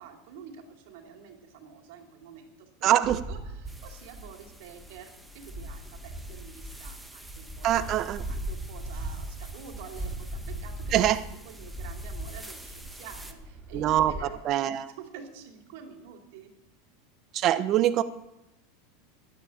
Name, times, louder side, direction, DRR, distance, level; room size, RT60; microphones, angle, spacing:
voice 1, 0.0-2.9 3.3-8.0 8.3-11.0 11.4-14.7 15.0-16.5, right 7 dB, 70° right, 4 dB, 2.8 m, -48 dB
voice 2, 2.8-3.2 7.6-8.2 10.9-11.2 13.7-14.1 14.4-14.9 17.3-18.0, right 12 dB, 45° right, 13 dB, 1.0 m, -23 dB
sound 1, 3.0-14.3, right 1 dB, 15° right, 3.1 m, -39 dB
sound 2, 3.7-13.3, right 1 dB, ahead, 1.7 m, -50 dB
12.0 x 10.0 x 8.7 m, 0.89 s
hypercardioid pair, 110°, 0 cm